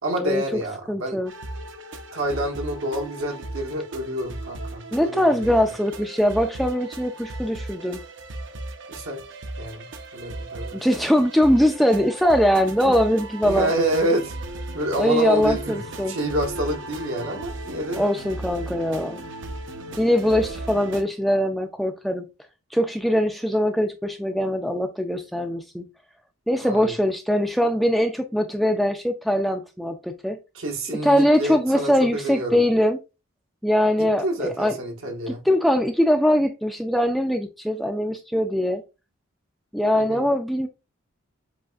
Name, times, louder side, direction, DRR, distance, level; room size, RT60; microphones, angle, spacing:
voice 1, 0.0-1.2 2.1-5.6 8.9-9.2 9.6-9.9 10.1-10.8 12.8-12.9 13.4-14.3 14.7-18.0 26.6-27.0 30.5-32.6 34.0-35.4 39.9-40.3, right 1 dB, 75° right, 1.3 m, -28 dB
voice 2, 0.9-1.3 4.9-8.0 10.7-13.7 15.0-16.2 18.0-19.2 20.0-22.2 22.7-25.8 26.5-30.4 31.0-33.0 33.6-34.8 35.5-38.8 39.7-40.7, equal, ahead, 0.3 m, -22 dB
sound 1, 1.3-21.0, right 2 dB, 55° right, 0.7 m, -36 dB
7.4 x 2.5 x 2.4 m
head